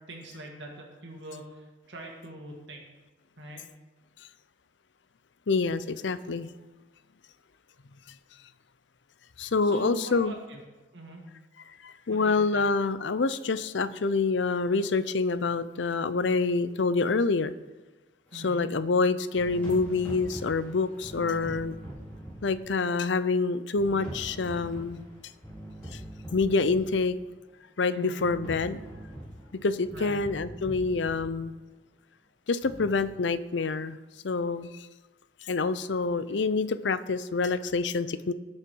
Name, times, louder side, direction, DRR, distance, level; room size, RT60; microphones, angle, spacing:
voice 1, 0.1-2.8 3.4-3.6 9.6-10.6 10.9-11.2 12.1-12.6 18.3-18.7 27.9-28.2 29.9-30.2, equal, 75° right, 0 dB, 2.0 m, -42 dB
voice 2, 5.5-6.5 9.4-10.4 11.8-17.5 18.3-21.7 22.4-25.0 25.9-26.0 26.3-27.2 27.8-28.8 29.6-31.5 32.5-34.0 34.2-34.9 35.4-38.3, left 4 dB, 75° left, 14 dB, 0.6 m, -27 dB
sound 1, 18.3-18.5 19.4-22.9 23.8-27.1 28.2-31.5 32.6-32.9, equal, 10° left, 3.5 m, -42 dB
19.0 x 6.5 x 4.7 m, 1.2 s
head